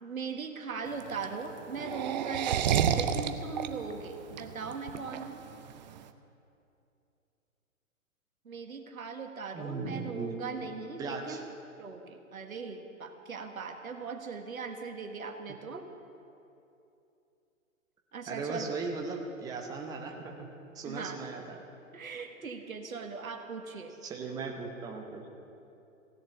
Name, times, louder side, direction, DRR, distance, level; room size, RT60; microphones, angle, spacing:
voice 1, 0.0-5.4 8.4-11.5 11.8-15.8 18.1-18.8 20.8-21.2 21.9-24.0, right 5 dB, 80° right, 5 dB, 1.5 m, -39 dB
sound 1, 0.9-6.0, right 9 dB, 35° right, 0.6 m, -30 dB
voice 2, 9.5-10.6 11.0-11.4 18.2-20.5 20.7-21.6 24.0-25.3, right 4 dB, 10° right, 1 dB, 0.9 m, -37 dB
16.0 x 7.3 x 9.1 m, 2.7 s
figure-of-eight pair, 125°, 41 cm